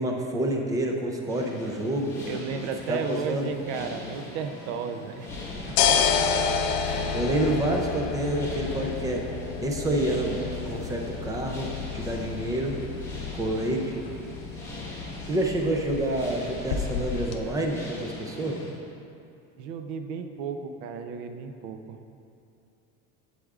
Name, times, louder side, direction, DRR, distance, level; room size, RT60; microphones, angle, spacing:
voice 1, 0.0-2.1 2.9-3.5 7.1-9.2 9.6-10.4 10.7-12.7 13.4-14.0 15.3-18.6, right 1 dB, 10° right, 1 dB, 0.4 m, -28 dB
sound 1, 1.3-18.7, left 2 dB, 5° left, 1.1 m, -41 dB
voice 2, 2.3-5.4 5.7-5.8 19.6-22.0, right 6 dB, 80° right, 7 dB, 0.6 m, -34 dB
sound 2, 5.3-17.4, left 6 dB, 75° left, 0.6 m, -30 dB
8.1 x 7.7 x 2.4 m, 2.5 s
cardioid pair, 160°, 34 cm